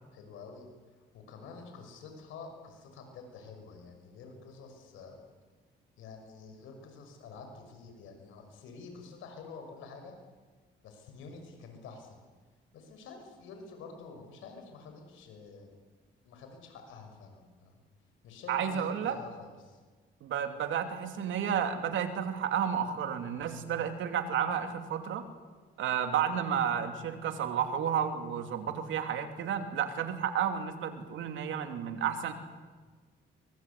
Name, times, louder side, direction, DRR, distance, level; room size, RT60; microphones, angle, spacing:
voice 1, 0.1-0.7 1.1-5.2 6.0-10.2 10.8-12.3 12.7-15.7 16.2-17.8 18.2-19.8, left 4 dB, 90° left, 5 dB, 6.0 m, -48 dB
voice 2, 18.5-19.2 20.2-25.2 25.8-32.3, right 8 dB, 80° right, 7 dB, 2.9 m, -31 dB
24.0 x 23.0 x 8.4 m, 1.4 s
cardioid pair, 90°, 20 cm